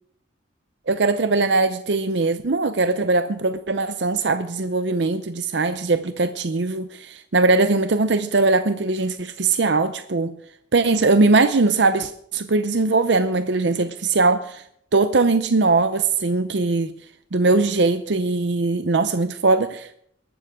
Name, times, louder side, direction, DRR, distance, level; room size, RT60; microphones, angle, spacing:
voice 1, 0.9-10.4 10.7-14.6 14.9-16.9 17.3-20.0, right 3 dB, 65° right, 0.7 m, -20 dB
22.5 x 12.0 x 3.7 m
head